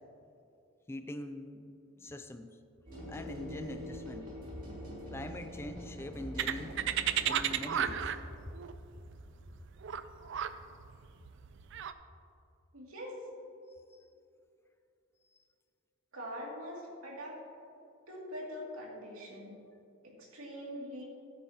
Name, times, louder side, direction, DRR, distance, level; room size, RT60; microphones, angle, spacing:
voice 1, 0.9-2.6 3.1-4.3 5.1-6.8 7.2-8.1, left 1 dB, 10° left, 8 dB, 0.3 m, -43 dB
sound 1, 2.9-8.1, equal, 40° right, 2.7 m, -44 dB
sound 2, 6.4-11.9, right 9 dB, 60° right, 0.4 m, -34 dB
voice 2, 12.7-13.1 16.1-17.4 18.1-19.5 20.0-21.0, equal, 90° right, -3 dB, 2.4 m, -43 dB
15.0 x 8.9 x 2.8 m, 2.6 s
head